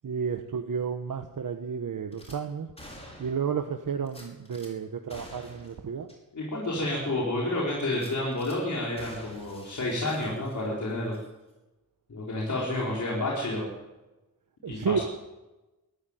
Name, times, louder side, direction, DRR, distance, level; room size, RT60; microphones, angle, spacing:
voice 1, 0.0-2.7 3.2-6.1 14.6-15.0, right 6 dB, 65° right, 5 dB, 1.3 m, -31 dB
Gunshot gunfire / Glass, 2.1-2.4 2.8-3.5 4.1-4.7 5.1-5.8 6.1-6.2 6.6-6.7 7.9-8.6 9.0-10.8 11.1-11.3, left 1 dB, 15° left, 5.5 m, -48 dB
voice 2, 6.3-11.1 12.1-13.6 14.7-15.0, left 1 dB, 60° left, -4 dB, 5.0 m, -30 dB
21.5 x 14.5 x 9.2 m, 1.0 s
wide cardioid pair, 160°, 34 cm